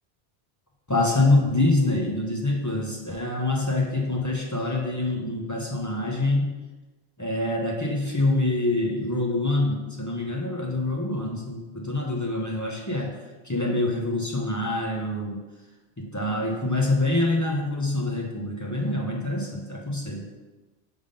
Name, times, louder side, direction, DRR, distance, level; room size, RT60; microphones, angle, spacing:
voice 1, 0.9-6.5 7.2-13.1 13.4-15.4 16.0-20.3, left 2 dB, 20° left, -1 dB, 0.7 m, -25 dB
5.5 x 3.5 x 5.2 m, 1.2 s
omnidirectional pair, 1.1 m